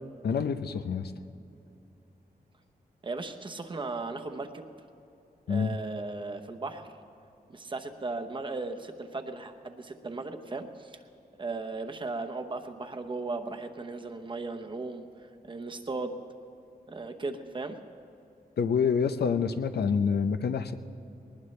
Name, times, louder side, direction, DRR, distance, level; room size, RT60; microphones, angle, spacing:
voice 1, 0.2-1.1 5.5-5.8 18.6-20.7, left 6 dB, 90° left, 10 dB, 0.7 m, -27 dB
voice 2, 3.0-4.6 5.5-6.9 7.5-11.0 11.4-15.1 15.4-16.2 16.9-17.8, right 3 dB, 30° right, 5 dB, 0.9 m, -36 dB
20.5 x 19.5 x 3.3 m, 2.7 s
wide cardioid pair, 175°, 16 cm